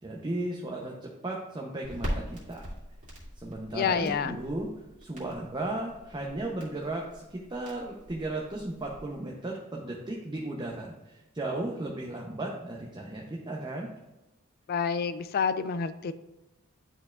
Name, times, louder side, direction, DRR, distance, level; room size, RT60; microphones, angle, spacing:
voice 1, 0.0-2.6 3.4-4.7 5.0-13.9, right 2 dB, 20° right, -2 dB, 0.6 m, -35 dB
Crackle, 1.8-9.1, equal, 35° right, 2.1 m, -42 dB
voice 2, 3.7-4.4 14.7-16.1, left 6 dB, 45° left, 13 dB, 0.3 m, -28 dB
10.5 x 4.4 x 2.4 m, 0.99 s
head